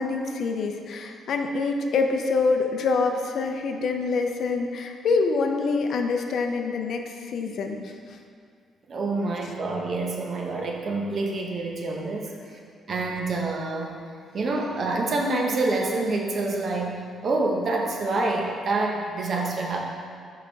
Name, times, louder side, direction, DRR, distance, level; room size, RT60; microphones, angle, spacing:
voice 1, 0.0-7.9, left 4 dB, 65° left, 4 dB, 0.5 m, -26 dB
voice 2, 8.9-12.3 12.9-14.0 14.3-19.8, right 2 dB, 50° right, 0 dB, 0.9 m, -27 dB
5.5 x 4.9 x 4.0 m, 2.2 s
cardioid pair, 90°, 0 cm